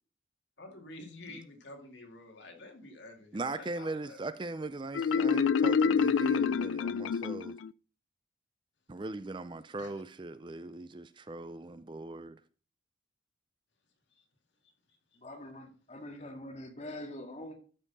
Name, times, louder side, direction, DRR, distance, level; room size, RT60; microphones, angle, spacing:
voice 1, 0.6-4.3 9.8-10.0 14.1-14.2 16.2-16.3, left 2 dB, 65° left, 2.3 m, -49 dB
voice 2, 3.3-7.5 8.9-12.4, right 2 dB, 25° right, 0.4 m, -39 dB
Marimba xylophone, 4.9-7.7, left 6 dB, 80° left, 0.3 m, -27 dB
voice 3, 15.2-17.5, left 1 dB, 35° left, 2.1 m, -44 dB
13.0 x 5.5 x 4.1 m
head